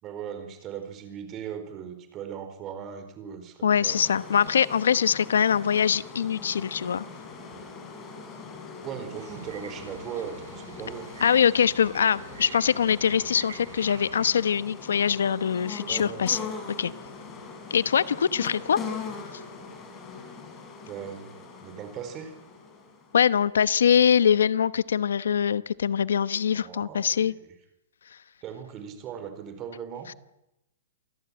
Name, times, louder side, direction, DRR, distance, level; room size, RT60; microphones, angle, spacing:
voice 1, 0.0-4.0 8.8-11.1 15.9-16.3 20.8-22.3 26.5-27.3 28.4-30.1, right 8 dB, 25° right, 9 dB, 4.6 m, -38 dB
voice 2, 3.6-7.0 11.2-16.4 16.8-16.9 17.7-18.8 23.1-27.3 30.1-30.2, left 8 dB, 85° left, 17 dB, 1.0 m, -23 dB
sound 1, 3.9-23.4, left 4 dB, 20° left, 6.0 m, -41 dB
sound 2, 9.1-14.3, right 7 dB, 85° right, 5.2 m, -46 dB
27.5 x 19.0 x 9.0 m, 0.90 s
hypercardioid pair, 160°, 0 cm